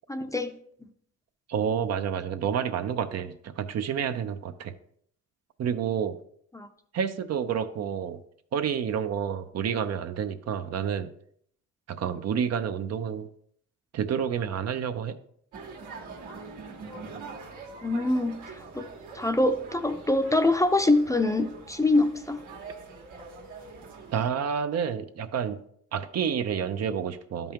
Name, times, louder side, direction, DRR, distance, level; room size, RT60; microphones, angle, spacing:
voice 1, 0.1-0.5 6.5-6.7 17.8-18.9 19.1-22.4, left 2 dB, 10° left, 8 dB, 0.6 m, -24 dB
voice 2, 1.5-4.7 5.6-6.2 6.9-8.2 8.5-11.1 11.9-13.3 13.9-15.2 24.1-25.6 25.9-27.5, right 8 dB, 55° right, 9 dB, 0.7 m, -29 dB
sound 1, 15.5-24.3, right 4 dB, 80° right, 1.9 m, -44 dB
12.0 x 5.4 x 2.9 m, 0.65 s
cardioid pair, 90°, 30 cm